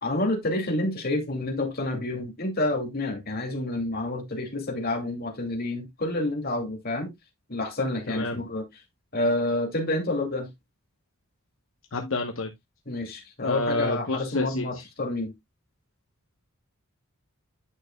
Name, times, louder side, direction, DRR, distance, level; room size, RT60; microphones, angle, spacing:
voice 1, 0.0-7.1 7.5-8.6 9.1-10.5 12.9-15.3, left 1 dB, 45° left, 2.4 m, -28 dB
voice 2, 8.1-8.4 11.9-12.5 13.4-14.6, left 2 dB, 65° left, 1.0 m, -29 dB
9.8 x 6.3 x 2.2 m
head